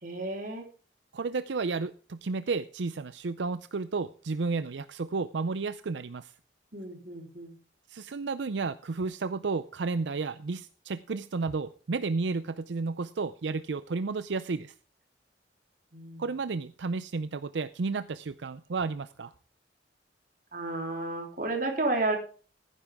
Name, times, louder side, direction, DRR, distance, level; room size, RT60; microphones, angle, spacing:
voice 1, 0.0-0.7 6.7-7.6 15.9-16.2 20.5-22.2, right 2 dB, 50° right, 2 dB, 3.6 m, -32 dB
voice 2, 1.1-6.3 7.9-14.7 16.2-19.3, right 4 dB, 85° right, 13 dB, 0.5 m, -32 dB
15.0 x 10.0 x 3.6 m, 0.39 s
head